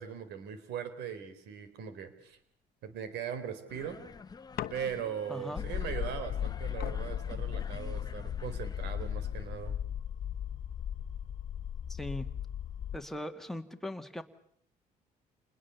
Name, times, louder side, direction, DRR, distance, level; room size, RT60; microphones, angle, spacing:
voice 1, 0.0-2.4 2.8-4.0 4.7-9.8, right 8 dB, 80° right, 11 dB, 4.1 m, -39 dB
sound 1, 3.7-9.8, left 4 dB, 25° left, 1.2 m, -50 dB
sound 2, 4.6-5.3 6.4-6.5 6.8-8.3 9.0-9.5, left 13 dB, 65° left, 1.0 m, -44 dB
voice 2, 5.3-5.6 11.9-12.3 12.9-14.2, left 1 dB, ahead, 6 dB, 2.0 m, -39 dB
sound 3, 5.6-13.0, left 9 dB, 50° left, 1.6 m, -37 dB
29.0 x 21.0 x 7.1 m, 0.65 s
cardioid pair, 110°, 17 cm